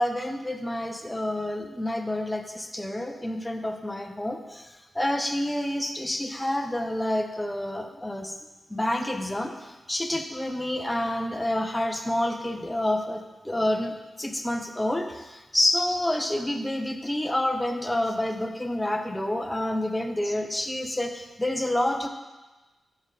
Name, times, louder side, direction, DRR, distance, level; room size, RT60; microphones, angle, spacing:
voice 1, 0.0-8.3 8.7-22.1, left 1 dB, 10° left, 5 dB, 0.7 m, -28 dB
6.7 x 6.5 x 4.8 m, 1.2 s
wide cardioid pair, 95°, 0 cm